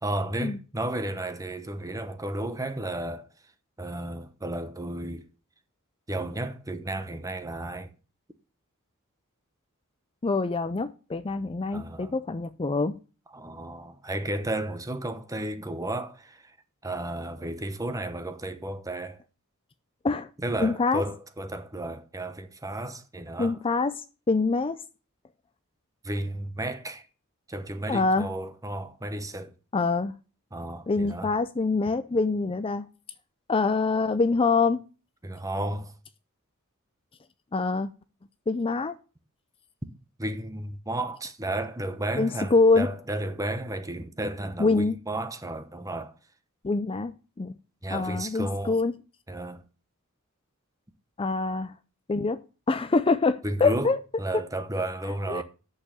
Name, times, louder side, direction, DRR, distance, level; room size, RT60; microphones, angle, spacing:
voice 1, 0.0-3.3 3.8-5.2 6.1-7.9 11.7-12.1 13.3-16.5 16.8-19.2 20.4-23.6 26.0-27.0 27.5-29.5 30.5-31.3 35.2-35.9 40.2-46.1 47.8-48.8 49.3-49.6 53.4-53.9 54.2-55.4, right 1 dB, 15° right, 0.9 m, -33 dB
voice 2, 10.2-13.0 20.0-20.3 20.6-21.0 23.4-24.8 27.9-28.3 29.7-30.2 30.9-32.9 33.5-34.8 37.5-37.9 38.5-38.9 42.2-42.9 44.6-45.0 46.6-47.1 47.4-47.5 47.9-48.9 51.2-51.7 52.1-52.4 52.7-54.0 55.3-55.4, left 3 dB, 25° left, 0.5 m, -25 dB
8.6 x 6.7 x 6.8 m
head